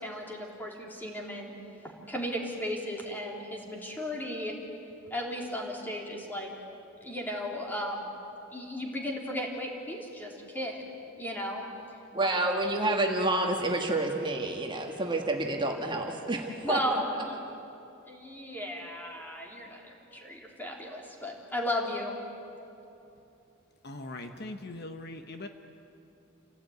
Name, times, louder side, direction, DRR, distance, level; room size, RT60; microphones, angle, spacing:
voice 1, 0.0-1.5 2.1-4.6 5.1-6.5 7.0-8.1 8.5-10.9 11.2-11.6 12.2-12.3 16.6-16.9 18.1-22.2, left 1 dB, 10° left, -1 dB, 3.4 m, -35 dB
voice 2, 12.1-17.0, right 2 dB, 25° right, 2 dB, 1.7 m, -29 dB
voice 3, 23.8-25.5, left 2 dB, 50° left, 6 dB, 1.2 m, -40 dB
28.0 x 17.0 x 9.5 m, 2.8 s
head